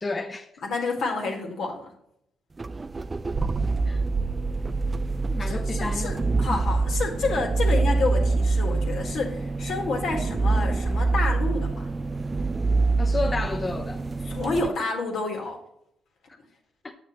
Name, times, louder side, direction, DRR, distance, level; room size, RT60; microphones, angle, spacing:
voice 1, 0.0-0.5 3.8-4.0 5.3-6.2 6.5-6.6 13.0-14.0 16.8-16.9, left 3 dB, 25° left, 0.5 m, -31 dB
voice 2, 0.6-1.9 5.5-11.9 14.3-15.6, left 3 dB, 70° left, 1.7 m, -29 dB
sound 1, 2.6-14.7, right 3 dB, 25° right, 0.3 m, -25 dB
8.2 x 6.5 x 3.0 m
cardioid pair, 90°, 0 cm